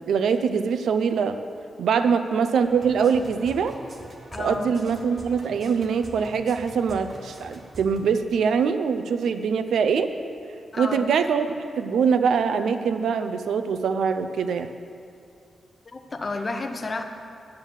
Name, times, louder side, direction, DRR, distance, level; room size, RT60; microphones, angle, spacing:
voice 1, 0.1-1.4 1.8-3.7 4.4-10.1 10.8-11.5 11.7-14.7, right 6 dB, 80° right, 9 dB, 0.6 m, -23 dB
sound 1, 2.6-8.2, right 1 dB, 35° right, 1.1 m, -44 dB
voice 2, 4.3-4.8 10.7-11.1 15.8-17.0, left 3 dB, 35° left, 6 dB, 0.9 m, -31 dB
9.8 x 7.3 x 7.3 m, 2.5 s
wide cardioid pair, 120°, 0 cm